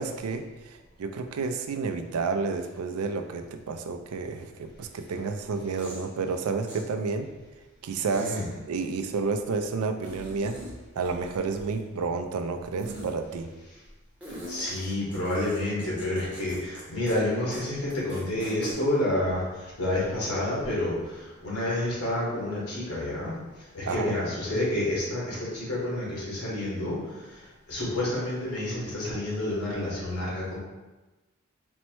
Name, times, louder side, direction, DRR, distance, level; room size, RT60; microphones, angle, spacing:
voice 1, 0.0-7.3 7.8-8.3 8.7-10.6 11.0-13.5 23.9-24.1, right 4 dB, 90° right, 7 dB, 0.4 m, -30 dB
Fart Squeeze, 5.8-6.0 6.7-6.8 8.1-8.4 10.0-10.7 11.0-11.9 12.8-13.1 14.2-16.8 17.1-17.2 17.5-17.6 17.9-18.7, right 1 dB, 5° right, 0.7 m, -41 dB
voice 2, 8.1-8.4 14.5-23.3 23.7-30.6, left 1 dB, 85° left, -6 dB, 1.4 m, -29 dB
4.4 x 2.1 x 4.4 m, 1.1 s
head